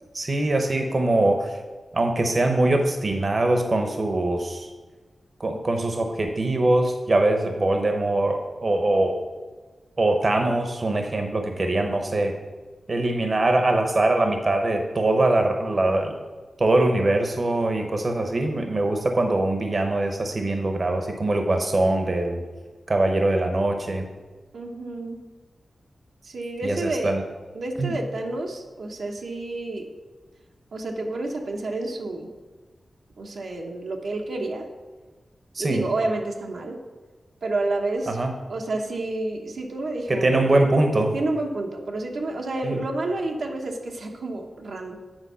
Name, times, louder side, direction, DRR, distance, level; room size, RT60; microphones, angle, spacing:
voice 1, 0.1-1.5 1.9-4.7 5.4-9.2 10.0-12.3 12.9-16.1 16.6-22.4 22.9-24.1 26.6-27.2 27.8-28.0 35.5-35.8 38.1-38.3 40.1-41.1 42.6-42.8, right 2 dB, 45° right, 4 dB, 0.8 m, -22 dB
voice 2, 24.5-25.3 26.2-27.2 27.5-29.9 30.7-32.3 33.2-34.7 35.6-36.8 37.4-38.2 38.5-40.7 41.1-45.0, right 2 dB, 85° right, 1 dB, 1.0 m, -29 dB
9.0 x 4.5 x 5.6 m, 1.3 s
wide cardioid pair, 95°, 0 cm